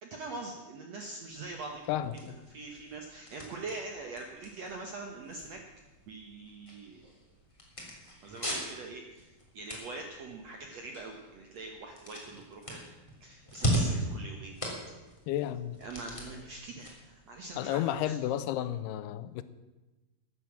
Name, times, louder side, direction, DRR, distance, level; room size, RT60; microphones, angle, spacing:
voice 1, 0.0-1.8 2.1-5.6 6.1-7.0 8.2-12.9 13.2-14.6 15.8-18.2, right 3 dB, 70° right, 2 dB, 1.6 m, -43 dB
sound 1, 1.3-18.2, equal, 10° left, 2.5 m, -39 dB
voice 2, 1.9-2.4 15.3-15.8 17.6-19.4, left 12 dB, 85° left, 14 dB, 2.6 m, -32 dB
13.5 x 9.9 x 7.3 m, 1.1 s
omnidirectional pair, 4.7 m